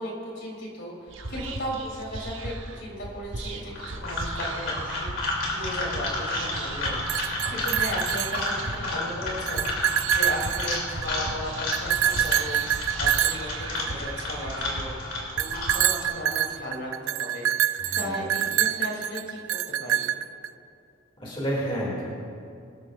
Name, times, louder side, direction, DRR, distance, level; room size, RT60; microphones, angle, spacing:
voice 1, 0.0-14.9 15.3-19.4 19.8-20.2, equal, 60° left, -3 dB, 3.3 m, -36 dB
Whispering, 1.1-15.7, right 2 dB, 65° right, 1.1 m, -38 dB
sound 1, 3.7-16.0, left 2 dB, 75° left, 3.1 m, -32 dB
sound 2, 6.9-8.9 9.3-11.2 11.7-14.4 15.4-20.5, right 11 dB, 90° right, 0.4 m, -26 dB
voice 2, 17.8-18.2 21.2-22.0, equal, 25° left, -5 dB, 2.6 m, -30 dB
22.5 x 13.5 x 2.6 m, 2.4 s
head